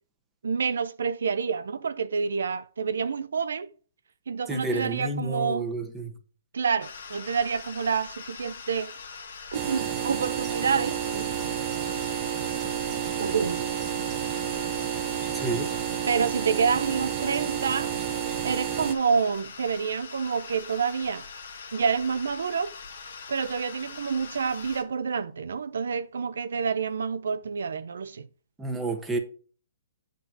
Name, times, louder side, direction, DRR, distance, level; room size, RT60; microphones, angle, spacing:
voice 1, 0.4-3.7 4.3-5.7 6.5-9.2 9.5-11.3 13.2-13.7 16.1-17.9 18.4-21.3 21.7-22.7 23.3-28.3, right 6 dB, 85° right, 0.5 m, -28 dB
voice 2, 4.5-6.1 15.3-15.7 28.6-29.2, right 2 dB, 10° right, 1.2 m, -30 dB
sound 1, 6.8-24.8, left 5 dB, 75° left, 1.6 m, -42 dB
sound 2, 9.5-18.9, right 10 dB, 30° right, 0.8 m, -30 dB
8.0 x 4.0 x 6.0 m
hypercardioid pair, 150°, 0 cm